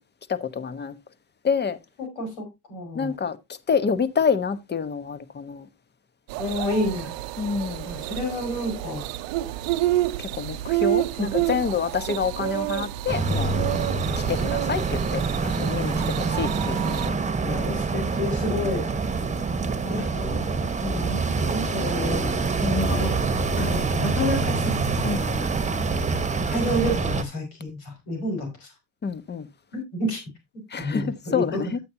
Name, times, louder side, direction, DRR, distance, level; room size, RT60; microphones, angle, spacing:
voice 1, 0.3-1.0 1.4-1.8 2.9-3.4 3.7-5.7 7.4-7.9 10.2-13.5 14.3-17.1 19.8-20.5 20.8-21.1 22.6-23.3 25.0-25.3 29.0-29.5 30.7-31.8, left 6 dB, 30° left, 1.1 m, -28 dB
voice 2, 2.0-3.1 6.4-7.1 7.8-9.1 11.2-11.3 17.4-18.9 19.9-20.1 20.9-22.3 22.7-23.1 23.6-25.0 26.5-28.7 29.7-30.2 30.8-31.6, left 1 dB, 90° left, 5.3 m, -29 dB
sound 1, 6.3-17.1, right 16 dB, 90° right, 0.6 m, -29 dB
sound 2, 13.1-27.2, right 4 dB, 20° right, 1.2 m, -26 dB
11.0 x 8.4 x 2.7 m
supercardioid pair, 75°, 32 cm